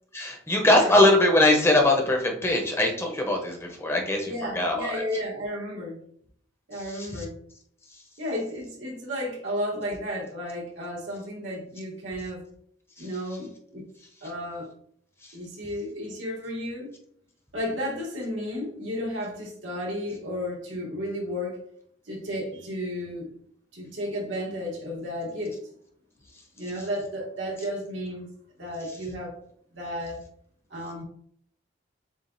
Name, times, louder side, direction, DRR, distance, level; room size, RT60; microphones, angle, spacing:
voice 1, 0.1-5.0 6.9-7.2, left 1 dB, 15° left, 1 dB, 0.7 m, -22 dB
voice 2, 4.2-6.0 6.7-7.4 8.2-12.4 13.0-13.9 14.2-14.7 15.3-16.9 17.5-21.6 22.1-23.3 23.7-25.6 26.6-28.3 28.6-29.4 29.7-30.2 30.7-31.0, equal, 85° right, -3 dB, 1.7 m, -33 dB
7.1 x 2.4 x 2.6 m, 0.64 s
head